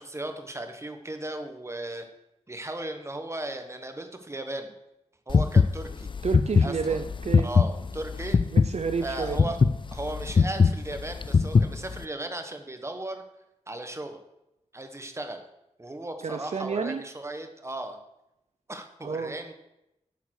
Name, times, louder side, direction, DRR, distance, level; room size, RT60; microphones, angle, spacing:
voice 1, 0.0-2.0 2.5-4.7 5.3-6.1 6.6-7.0 7.4-8.4 9.0-9.6 9.9-13.2 13.7-14.2 14.7-15.4 15.8-18.0 18.7-19.5, right 1 dB, 20° right, 6 dB, 1.2 m, -36 dB
sound 1, 5.3-12.0, left 5 dB, 40° left, 0.4 m, -22 dB
voice 2, 6.2-7.5 8.5-9.4 16.2-17.0 19.0-19.3, right 5 dB, 60° right, 7 dB, 0.6 m, -30 dB
9.2 x 6.7 x 6.4 m, 0.87 s
wide cardioid pair, 105°, 12 cm